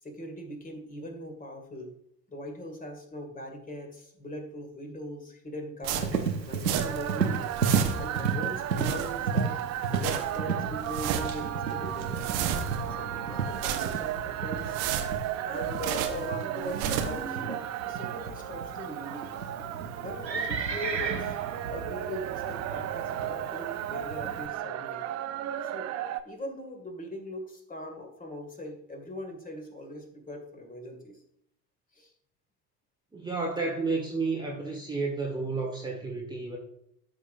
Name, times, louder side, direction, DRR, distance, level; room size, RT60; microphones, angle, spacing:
voice 1, 0.0-1.9 2.3-7.4 8.0-12.1 12.9-14.8 15.4-19.5 20.0-21.4 21.7-25.0 25.6-25.9 26.2-31.2 31.9-32.1, equal, 15° left, 3 dB, 2.3 m, -40 dB
sound 1, 5.8-7.1 7.4-8.2 8.6-9.4 9.8-10.4 10.8-11.5 11.9-12.9 13.4-14.2 14.6-16.3 16.6-17.3, right 8 dB, 50° right, 1.2 m, -33 dB
Livestock farm animals working animals, 6.0-24.5, right 5 dB, 90° right, 0.9 m, -34 dB
sound 2, 6.7-26.2, right 12 dB, 30° right, 0.7 m, -35 dB
voice 2, 33.1-36.6, right 3 dB, 10° right, -1 dB, 1.5 m, -31 dB
12.5 x 6.3 x 2.6 m, 0.71 s
figure-of-eight pair, 70°, 50 cm